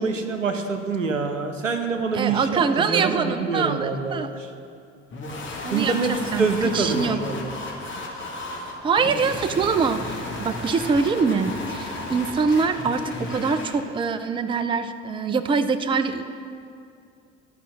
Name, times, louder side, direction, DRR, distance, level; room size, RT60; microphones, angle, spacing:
voice 1, 0.0-4.5 5.7-7.5, right 4 dB, 90° right, 6 dB, 0.6 m, -26 dB
voice 2, 2.1-4.3 5.6-6.5 6.7-7.2 8.8-10.1 10.4-16.2, right 5 dB, 15° right, 10 dB, 0.4 m, -24 dB
sound 1, 5.1-13.8, left 2 dB, 30° left, 2.0 m, -34 dB
11.5 x 5.6 x 6.0 m, 2.4 s
figure-of-eight pair, 55°, 37 cm